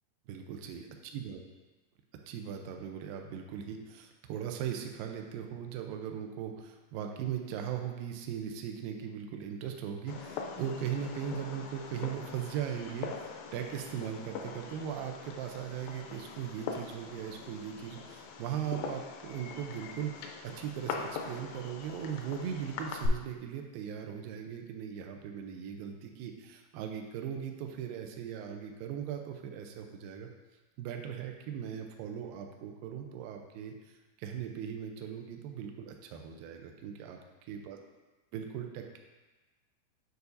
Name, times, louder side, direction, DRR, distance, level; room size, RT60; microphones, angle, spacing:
voice 1, 0.3-0.9 1.1-1.4 2.3-30.3 30.8-37.8 38.3-39.0, right 8 dB, 90° right, 3 dB, 2.0 m, -39 dB
Fireworks, 10.1-23.1, left 6 dB, 85° left, 2.1 m, -42 dB
8.1 x 4.7 x 2.6 m, 1.2 s
omnidirectional pair, 4.7 m